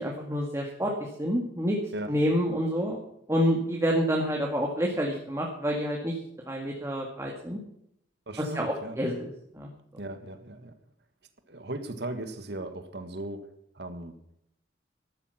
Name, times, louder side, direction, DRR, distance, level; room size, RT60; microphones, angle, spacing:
voice 1, 0.0-1.8 2.1-3.0 3.3-6.2 6.5-7.6 8.4-9.7, equal, 15° right, 0 dB, 2.0 m, -28 dB
voice 2, 8.3-9.0 10.0-10.8 11.5-13.5 13.7-14.2, right 1 dB, 70° right, 9 dB, 1.7 m, -37 dB
14.0 x 12.0 x 5.9 m, 0.74 s
head